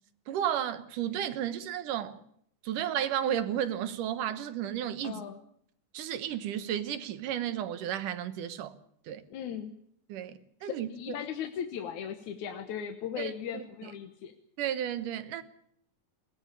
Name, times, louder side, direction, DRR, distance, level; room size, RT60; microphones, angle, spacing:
voice 1, 0.3-2.2 2.6-5.2 5.9-8.7 9.1-9.2 10.1-11.1 13.2-13.9 14.6-15.4, right 10 dB, 85° right, 2.8 m, -33 dB
voice 2, 5.0-5.4 9.3-9.7 10.6-14.3, left 8 dB, 70° left, 2.6 m, -37 dB
21.0 x 17.0 x 8.5 m
omnidirectional pair, 3.6 m